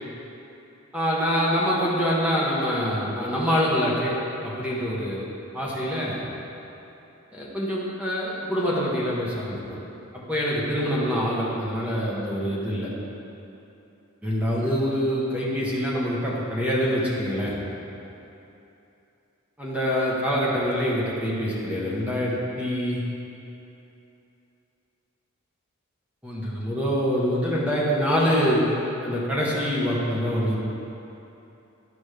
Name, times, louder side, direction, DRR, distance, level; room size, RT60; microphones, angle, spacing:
voice 1, 0.9-4.2 4.4-5.2 5.5-6.2 7.3-9.6 10.1-12.9 14.2-17.5 19.6-23.0 26.2-28.6 29.0-30.6, equal, 5° right, -6 dB, 1.0 m, -25 dB
11.0 x 5.1 x 3.3 m, 2.9 s
head